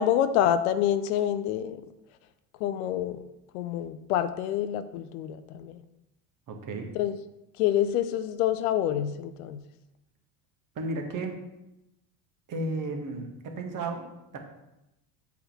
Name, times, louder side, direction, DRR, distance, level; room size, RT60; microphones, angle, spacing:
voice 1, 0.0-1.9 2.6-3.2 3.5-5.8 6.9-7.1 7.6-9.6, left 10 dB, 60° left, 11 dB, 0.7 m, -27 dB
voice 2, 6.5-6.9 10.8-11.4 12.5-14.0 14.3-14.4, right 2 dB, 40° right, 4 dB, 1.8 m, -33 dB
8.3 x 4.3 x 7.0 m, 0.91 s
figure-of-eight pair, 70°, 50 cm